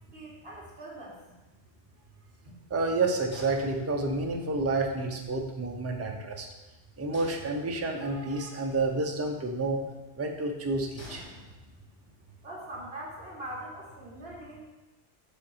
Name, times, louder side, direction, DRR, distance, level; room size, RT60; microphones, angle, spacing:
voice 1, 0.1-1.2 2.4-2.5 12.4-14.6, right 1 dB, 60° right, -4 dB, 1.8 m, -42 dB
voice 2, 2.7-6.5 7.0-9.8 10.2-11.2, right 3 dB, 20° right, 2 dB, 0.4 m, -29 dB
sound 1, 3.3-4.4 7.1-8.2 11.0-12.1, left 1 dB, 90° left, 2.1 m, -49 dB
5.2 x 3.8 x 5.6 m, 1.1 s
omnidirectional pair, 1.2 m